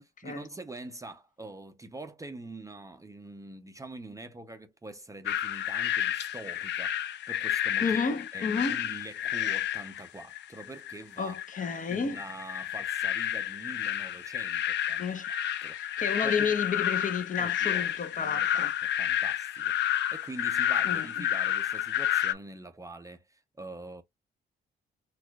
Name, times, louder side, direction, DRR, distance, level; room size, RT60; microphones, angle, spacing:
voice 1, 0.0-8.0 8.3-11.4 11.9-15.0 15.6-15.8 16.2-16.6 17.4-19.7 20.1-24.0, right 2 dB, 15° right, 0.5 m, -44 dB
sound 1, 5.3-22.3, left 11 dB, 65° left, 0.4 m, -30 dB
voice 2, 7.8-8.8 11.2-12.2 15.0-15.3 15.7-18.7 20.8-21.3, left 5 dB, 40° left, 0.8 m, -31 dB
4.2 x 2.4 x 2.2 m
cardioid pair, 90°, 20 cm